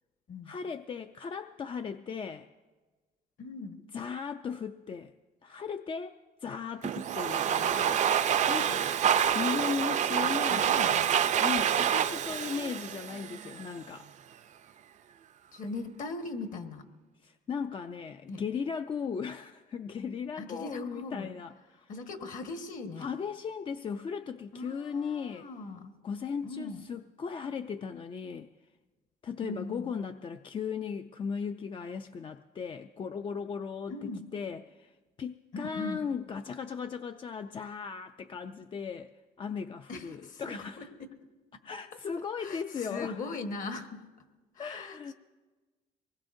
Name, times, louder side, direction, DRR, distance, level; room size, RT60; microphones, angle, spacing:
voice 1, 0.4-2.5 3.9-5.1 5.4-8.9 9.3-10.7 11.4-14.1 17.2-21.9 23.0-25.5 26.0-28.5 29.2-34.9 35.2-39.1 39.4-40.9 41.6-43.2 44.6-45.1, left 6 dB, 30° left, 8 dB, 0.4 m, -37 dB
voice 2, 3.4-3.8 10.5-11.1 15.5-16.9 18.3-18.5 20.4-21.3 21.9-23.1 24.5-25.9 26.4-26.9 29.4-29.9 33.9-34.2 35.5-36.1 39.9-41.1 42.4-44.0 44.6-45.1, left 3 dB, 50° left, 6 dB, 1.4 m, -40 dB
Domestic sounds home sounds, 6.8-13.7, right 9 dB, 45° right, 0.5 m, -27 dB
23.5 x 20.0 x 2.6 m, 1.3 s
cardioid pair, 110°, 17 cm